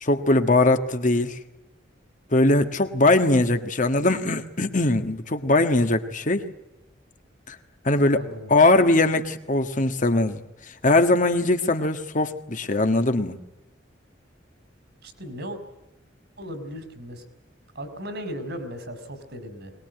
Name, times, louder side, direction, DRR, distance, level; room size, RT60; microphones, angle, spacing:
voice 1, 0.0-1.4 2.3-6.4 7.5-7.6 7.8-8.2 8.5-10.4 10.8-13.4, left 2 dB, 45° left, 7 dB, 1.7 m, -21 dB
voice 2, 8.1-8.5 15.0-15.6 16.4-17.2 17.7-19.7, equal, 65° right, 10 dB, 4.4 m, -36 dB
22.0 x 20.5 x 9.2 m, 0.96 s
head